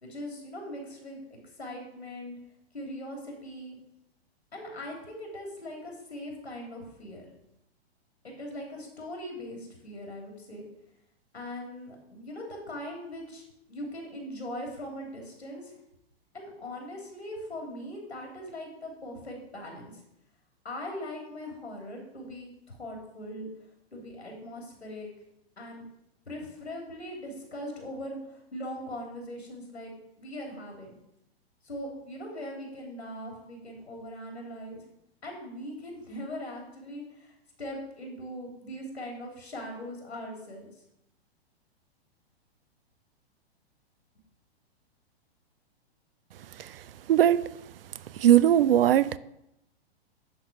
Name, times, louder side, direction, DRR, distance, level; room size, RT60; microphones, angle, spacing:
voice 1, 0.0-2.4 2.7-3.8 4.5-7.2 8.2-10.6 11.3-13.4 13.7-15.7 16.3-19.9 20.6-23.5 23.9-25.1 25.6-25.8 26.3-30.9 31.6-34.8 35.2-40.7, left 1 dB, 90° left, 3.2 m, -40 dB
voice 2, 47.1-47.4 48.2-49.2, right 11 dB, 65° right, 0.5 m, -19 dB
10.5 x 4.3 x 6.2 m
figure-of-eight pair, 110°, 32 cm